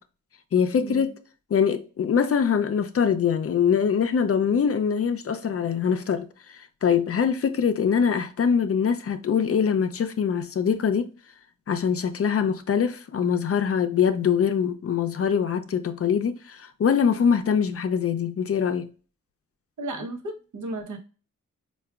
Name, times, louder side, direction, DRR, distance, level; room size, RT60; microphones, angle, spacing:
voice 1, 0.5-1.1 1.5-11.1 11.7-18.9, left 7 dB, 50° left, 0.5 m, -23 dB
voice 2, 19.8-21.0, right 2 dB, 75° right, 0.9 m, -34 dB
4.5 x 2.3 x 2.3 m
wide cardioid pair, 105°, 30 cm